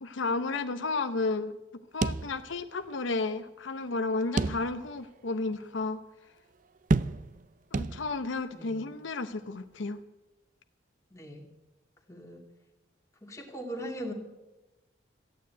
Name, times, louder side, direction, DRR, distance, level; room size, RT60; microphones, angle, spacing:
voice 1, 0.0-6.0 7.7-10.0, left 3 dB, 75° left, 9 dB, 0.7 m, -32 dB
sound 1, 2.0-2.9 3.2-3.3 4.4-5.0 5.5-5.6 6.9-7.5 7.7-8.4, right 3 dB, 40° right, 0.4 m, -30 dB
voice 2, 11.1-11.4 12.1-12.4 13.2-14.1, equal, 15° left, 1 dB, 2.1 m, -39 dB
14.0 x 9.4 x 9.1 m, 1.0 s
head